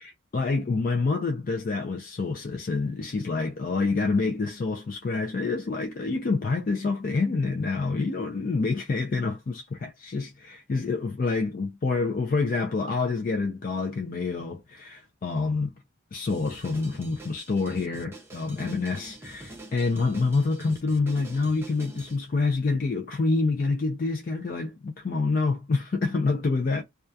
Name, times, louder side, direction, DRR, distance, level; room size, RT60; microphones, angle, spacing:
voice 1, 0.0-15.7 16.1-26.8, left 3 dB, 40° left, 0.4 m, -27 dB
Drum kit, 16.3-22.2, right 1 dB, 10° right, 0.6 m, -46 dB
2.3 x 2.2 x 2.6 m
head